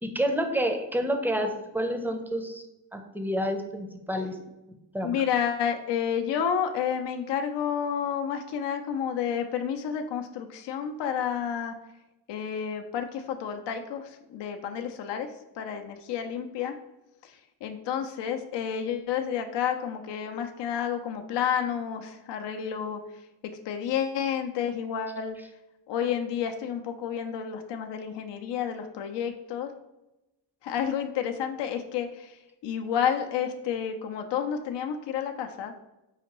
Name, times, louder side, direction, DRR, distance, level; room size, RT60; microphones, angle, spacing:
voice 1, 0.0-2.6 2.9-4.4 4.9-5.2, equal, 5° right, 5 dB, 0.6 m, -29 dB
voice 2, 5.0-11.7 12.3-15.3 15.6-16.7 17.2-17.3 17.6-23.0 23.7-25.4 25.9-29.7 30.6-35.7, left 8 dB, 65° left, 5 dB, 0.5 m, -30 dB
4.9 x 2.5 x 2.9 m, 0.93 s
supercardioid pair, 50°, 45 cm